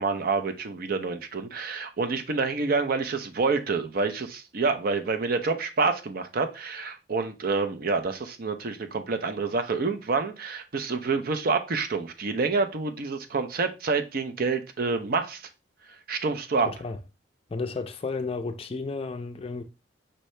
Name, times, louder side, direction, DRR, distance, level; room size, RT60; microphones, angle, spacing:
voice 1, 0.0-15.4 16.1-16.7, right 4 dB, 55° right, 0.5 m, -27 dB
voice 2, 16.6-17.0 17.5-19.6, left 4 dB, 30° left, 0.4 m, -32 dB
5.4 x 2.7 x 3.1 m
head